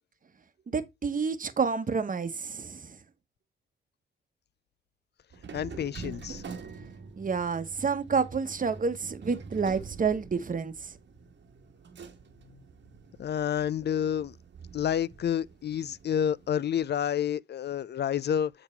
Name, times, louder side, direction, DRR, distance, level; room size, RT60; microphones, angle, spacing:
voice 1, 0.7-3.0 7.2-10.9, right 5 dB, 40° right, 1.1 m, -29 dB
sound 1, 5.3-16.5, right 5 dB, 65° right, 1.4 m, -46 dB
voice 2, 5.5-6.4 13.2-14.3 14.7-18.5, left 9 dB, 55° left, 0.5 m, -29 dB
7.7 x 4.0 x 4.4 m
cardioid pair, 65°, 21 cm